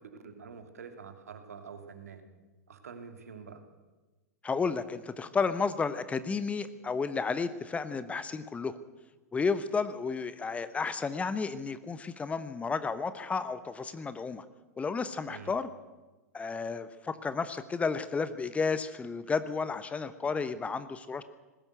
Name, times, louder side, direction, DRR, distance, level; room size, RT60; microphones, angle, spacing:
voice 1, 0.0-2.2 2.7-3.6 15.3-15.5, right 6 dB, 70° right, 6 dB, 3.0 m, -46 dB
voice 2, 4.4-8.8 9.3-14.4 14.8-15.7 16.3-21.2, left 5 dB, 15° left, 13 dB, 1.1 m, -32 dB
20.0 x 17.0 x 8.0 m, 1.2 s
figure-of-eight pair, 95°, 9 cm